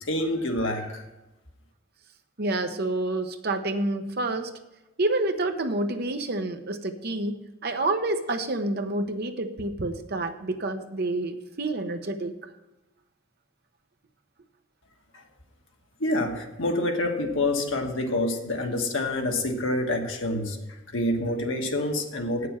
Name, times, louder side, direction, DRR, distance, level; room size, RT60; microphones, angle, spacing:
voice 1, 0.0-1.0 15.1-15.2 16.0-20.6 20.9-22.5, left 1 dB, 80° left, 3 dB, 1.4 m, -27 dB
voice 2, 2.4-4.5 5.0-12.3, right 2 dB, 55° right, 7 dB, 0.9 m, -28 dB
8.5 x 6.7 x 7.3 m, 1.0 s
head